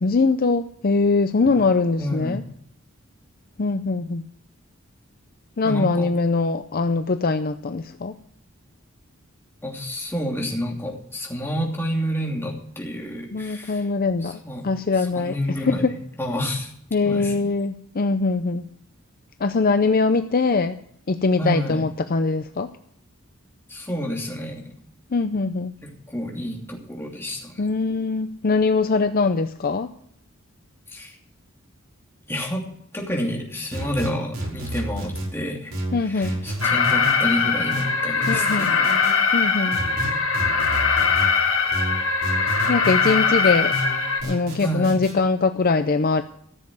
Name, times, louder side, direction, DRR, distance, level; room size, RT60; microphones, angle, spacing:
voice 1, 0.0-2.4 3.6-4.2 5.6-8.1 13.3-15.3 15.6-15.9 16.9-18.7 19.4-20.8 21.1-22.7 25.1-25.7 27.6-29.9 35.9-36.4 38.3-38.7 39.3-39.8 42.7-43.7 44.2-46.2, left 3 dB, 45° left, 9 dB, 0.6 m, -22 dB
voice 2, 2.0-2.5 5.6-6.1 9.6-13.9 14.2-14.6 15.0-16.7 17.0-17.5 21.4-21.8 23.7-24.7 25.8-27.6 30.9-31.2 32.3-32.7 32.9-38.9 44.6-45.0, equal, 10° left, -1 dB, 2.8 m, -29 dB
sound 1, 33.7-35.3 35.7-37.2 37.7-39.1 39.7-41.3 41.7-43.2 43.7-45.1, equal, 70° right, 5.8 m, -30 dB
Alarm, 36.6-44.2, left 5 dB, 90° left, 2.7 m, -21 dB
14.5 x 7.6 x 7.7 m, 0.68 s
head